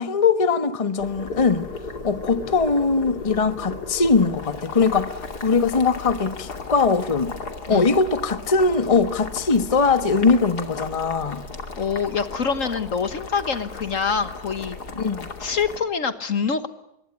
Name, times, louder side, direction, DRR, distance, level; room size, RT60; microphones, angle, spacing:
voice 1, 0.0-1.7 2.0-7.3 7.7-11.4 15.0-15.3, left 4 dB, 25° left, 1.3 m, -21 dB
Boiling, 1.0-15.8, left 4 dB, 80° left, 3.2 m, -36 dB
voice 2, 11.8-14.8 15.4-16.7, left 6 dB, 55° left, 1.6 m, -25 dB
24.5 x 22.5 x 9.8 m
omnidirectional pair, 1.7 m